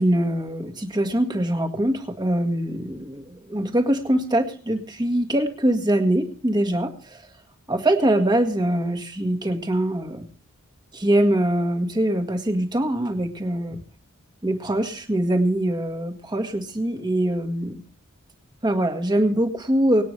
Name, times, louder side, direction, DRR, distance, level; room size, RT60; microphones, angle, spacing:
voice 1, 0.0-7.2 7.7-10.3 10.9-13.8 14.4-17.8 18.6-20.0, right 1 dB, 20° right, 5 dB, 1.8 m, -23 dB
24.5 x 9.3 x 3.3 m, 0.43 s
head